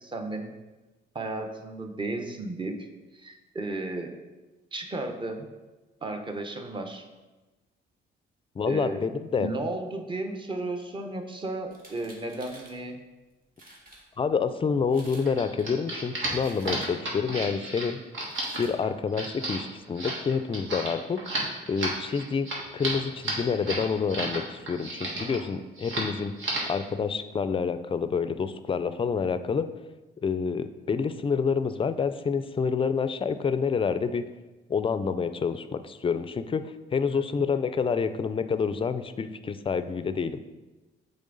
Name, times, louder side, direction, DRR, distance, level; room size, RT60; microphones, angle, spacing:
voice 1, 0.0-0.5 1.1-2.9 3.1-4.1 4.7-5.5 6.0-7.0 8.7-9.0 9.4-13.0 37.3-37.5, right 2 dB, 25° right, 4 dB, 0.8 m, -34 dB
voice 2, 8.6-9.5 14.2-18.0 18.6-21.2 21.7-29.7 30.2-34.2 34.7-40.4, left 5 dB, 25° left, 11 dB, 0.4 m, -28 dB
sound 1, 11.6-12.8 13.3-13.4 13.6-14.0 14.8-15.3 15.6-17.1 18.2-18.7, right 1 dB, 45° right, 1.7 m, -50 dB
sound 2, 15.2-24.4 24.7-25.4 25.8-26.1 26.4-26.8, right 2 dB, 75° right, 1.7 m, -32 dB
8.2 x 3.4 x 3.9 m, 1.1 s
cardioid pair, 90°, 20 cm